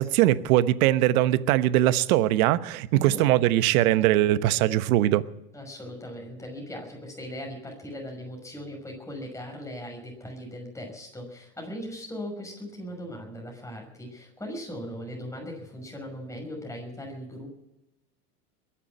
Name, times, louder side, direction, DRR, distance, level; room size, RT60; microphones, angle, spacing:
voice 1, 0.0-5.2, right 14 dB, 70° right, 1.1 m, -21 dB
voice 2, 2.9-3.2 5.5-17.5, equal, 5° left, 6.0 m, -39 dB
22.0 x 7.4 x 8.6 m
supercardioid pair, 110°, 44 cm